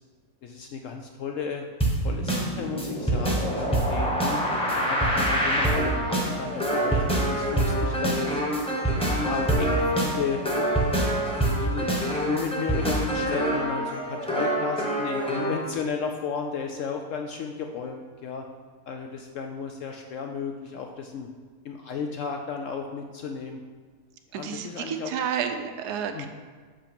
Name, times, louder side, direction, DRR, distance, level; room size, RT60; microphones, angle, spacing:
voice 1, 0.4-1.7 2.0-4.4 4.7-8.3 9.2-10.4 11.5-18.5 18.9-21.3 21.6-23.6 24.3-25.1 26.1-26.3, left 6 dB, 70° left, 3 dB, 0.7 m, -33 dB
sound 1, 1.8-15.6, right 1 dB, 5° left, 0.9 m, -25 dB
voice 2, 24.3-26.3, right 7 dB, 80° right, 7 dB, 1.2 m, -30 dB
5.9 x 5.7 x 5.1 m, 1.5 s
omnidirectional pair, 1.7 m